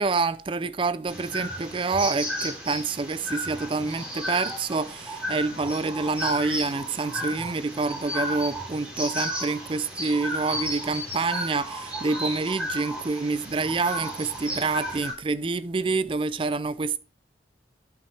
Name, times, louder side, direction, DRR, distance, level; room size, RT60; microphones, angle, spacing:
voice 1, 0.0-17.0, right 3 dB, 30° right, 0.4 m, -27 dB
sound 1, 1.1-15.1, equal, 5° right, 3.2 m, -33 dB
10.5 x 5.8 x 3.3 m
head